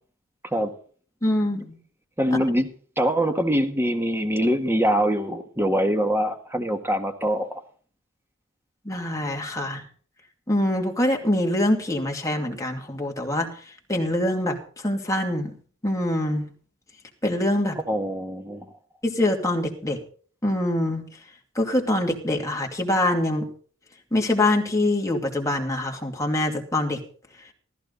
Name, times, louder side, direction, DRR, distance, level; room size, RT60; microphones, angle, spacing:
voice 1, 1.2-1.8 8.8-9.8 10.5-13.5 13.9-15.5 15.8-16.4 17.2-17.8 19.0-20.0 20.4-21.0 21.6-23.5 24.1-27.0, left 1 dB, 15° left, 1 dB, 2.6 m, -24 dB
voice 2, 2.2-2.7 3.0-7.6 17.9-18.7, equal, 10° right, 6 dB, 1.6 m, -23 dB
14.5 x 14.0 x 4.1 m, 0.43 s
head